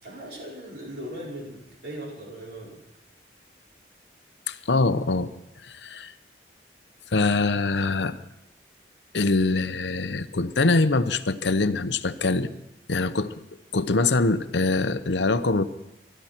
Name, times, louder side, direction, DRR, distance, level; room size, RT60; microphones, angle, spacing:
voice 1, 0.0-2.8, right 1 dB, 65° right, -3 dB, 5.3 m, -38 dB
voice 2, 4.5-5.3 5.6-6.1 7.1-8.1 9.1-12.5 12.9-13.3 13.7-15.6, left 3 dB, 80° left, 12 dB, 0.8 m, -23 dB
24.5 x 12.5 x 4.5 m, 0.87 s
head